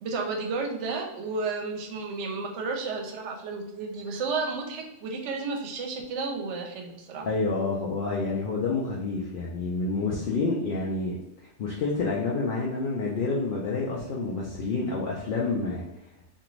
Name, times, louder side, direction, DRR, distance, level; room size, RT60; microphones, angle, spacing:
voice 1, 0.0-7.3, right 4 dB, 70° right, 2 dB, 0.9 m, -32 dB
voice 2, 7.2-11.2 11.6-15.8, left 3 dB, 60° left, -3 dB, 0.6 m, -28 dB
2.5 x 2.4 x 3.0 m, 0.92 s
omnidirectional pair, 1.3 m